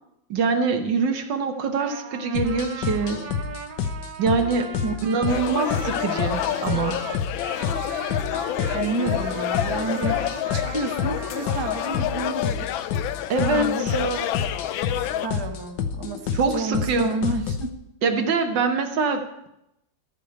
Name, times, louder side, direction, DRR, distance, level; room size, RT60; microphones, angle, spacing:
voice 1, 0.3-3.3 4.2-4.7 5.0-7.0 13.3-14.0 16.3-17.1 18.0-19.5, right 4 dB, 70° right, 5 dB, 1.7 m, -24 dB
Trumpet, 1.6-12.5, right 6 dB, 85° right, 1.7 m, -39 dB
sound 1, 2.3-17.7, left 7 dB, 70° left, 1.4 m, -30 dB
sound 2, 5.3-15.3, left 12 dB, 90° left, 1.4 m, -29 dB
voice 2, 8.7-12.9 13.5-14.3 14.9-17.7, right 3 dB, 25° right, 4 dB, 0.5 m, -30 dB
14.0 x 5.1 x 7.9 m, 0.83 s
omnidirectional pair, 2.1 m